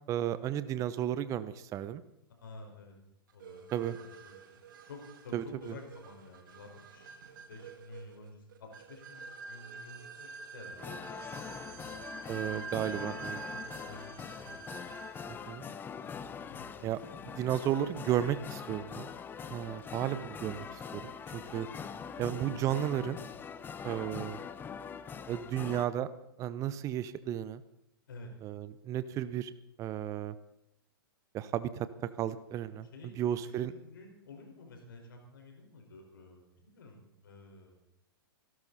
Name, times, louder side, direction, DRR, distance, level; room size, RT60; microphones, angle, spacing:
voice 1, 0.1-2.0 3.7-4.0 5.3-5.7 12.3-13.4 15.3-15.6 16.8-17.0 17.4-19.1 19.5-21.0 21.3-21.7 22.2-23.2 23.8-24.4 25.3-26.1 26.4-27.6 28.4-29.5 29.8-30.3 31.3-31.9 32.2-33.7, right 11 dB, 25° right, 15 dB, 0.8 m, -33 dB
voice 2, 2.4-2.9 3.3-3.6 4.0-11.1 11.6-12.0 13.5-14.8 16.5-17.8 28.1-28.3 32.9-33.1 33.4-37.7, left 2 dB, 60° left, 3 dB, 4.7 m, -51 dB
sound 1, 3.4-15.4, right 4 dB, 55° right, 2.2 m, -47 dB
sound 2, 10.8-25.9, left 6 dB, 15° left, 0.8 m, -43 dB
26.5 x 13.0 x 4.1 m, 0.76 s
figure-of-eight pair, 105°, 12 cm